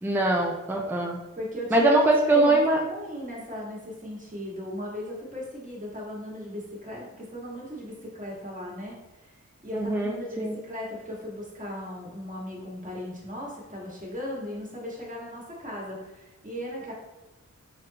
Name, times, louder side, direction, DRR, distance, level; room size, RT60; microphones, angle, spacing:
voice 1, 0.0-1.2 1.7-2.8 9.7-10.5, right 2 dB, 5° right, 0 dB, 0.5 m, -22 dB
voice 2, 1.3-9.4 9.6-16.9, left 1 dB, 25° right, -4 dB, 1.6 m, -37 dB
5.2 x 3.4 x 2.8 m, 1.0 s
wide cardioid pair, 85°, 30 cm